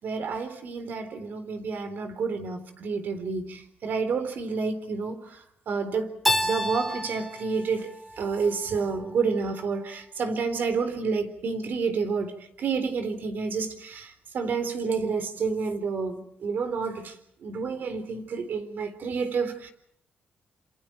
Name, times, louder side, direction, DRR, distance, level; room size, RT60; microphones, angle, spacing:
voice 1, 0.0-6.1 6.4-7.9 8.2-12.3 12.6-17.1 17.4-19.7, right 5 dB, 65° right, 8 dB, 4.0 m, -29 dB
Keyboard (musical), 6.2-9.1, left 1 dB, ahead, 3.6 m, -30 dB
29.0 x 27.0 x 4.6 m, 0.69 s
cardioid pair, 100°, 4 cm